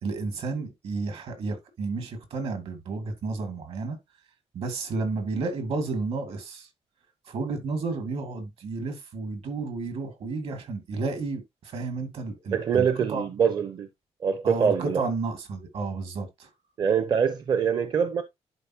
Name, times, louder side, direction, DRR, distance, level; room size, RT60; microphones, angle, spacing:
voice 1, 0.0-4.0 4.5-6.7 7.3-13.2 14.4-16.5, right 3 dB, 70° right, 2.3 m, -32 dB
voice 2, 12.5-13.9 14.2-15.0 16.8-18.2, right 7 dB, 40° right, 0.7 m, -24 dB
11.0 x 4.3 x 2.8 m
cardioid pair, 145°, 11 cm